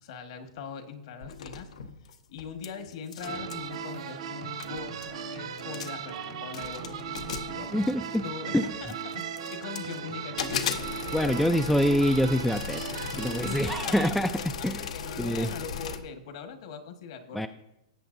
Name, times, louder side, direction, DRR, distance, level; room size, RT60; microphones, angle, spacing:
voice 1, 0.0-1.7 2.3-7.9 8.2-10.7 13.4-17.5, left 6 dB, 60° left, 6 dB, 1.5 m, -41 dB
sound 1, 1.2-2.7 2.9-3.7 4.3-4.4 4.6-5.2 5.6-6.1 6.5-8.3 8.9-10.0 10.4-16.0, left 6 dB, 80° left, 0.9 m, -36 dB
sound 2, 3.2-14.1, right 7 dB, 85° right, 2.2 m, -37 dB
voice 2, 7.7-8.2 8.5-8.6 11.1-14.4 14.6-14.9 15.2-15.5 17.3-17.5, equal, ahead, 7 dB, 0.3 m, -25 dB
17.5 x 7.8 x 2.6 m, 0.89 s
hypercardioid pair, 145°, 3 cm